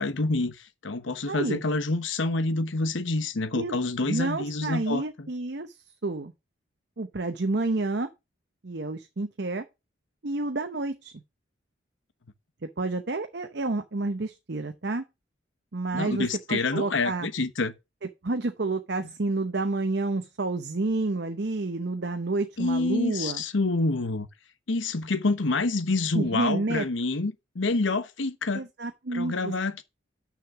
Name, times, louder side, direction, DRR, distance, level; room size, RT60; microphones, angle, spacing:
voice 1, 0.0-5.3 15.9-17.7 22.6-24.3 24.7-28.7 29.1-29.8, left 3 dB, 80° left, 1.0 m, -27 dB
voice 2, 1.3-1.6 3.5-5.8 6.0-6.3 7.0-8.1 8.6-9.6 10.2-11.1 12.8-15.0 15.7-17.3 18.2-23.4 26.1-26.9 28.5-29.5, right 2 dB, 60° right, 0.8 m, -29 dB
6.4 x 6.4 x 6.0 m
head